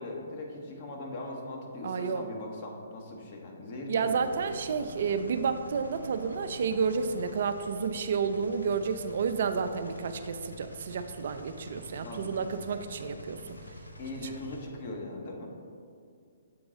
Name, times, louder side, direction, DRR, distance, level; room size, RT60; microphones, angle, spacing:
voice 1, 0.0-4.4 12.0-12.5 14.0-15.5, left 2 dB, 40° left, 0 dB, 1.0 m, -40 dB
voice 2, 1.8-2.3 3.9-13.6 14.2-14.3, right 5 dB, 55° right, 8 dB, 0.3 m, -31 dB
sound 1, 4.1-14.6, equal, 90° left, 0.6 m, -47 dB
7.1 x 3.9 x 3.7 m, 2.3 s
figure-of-eight pair, 130°, 0 cm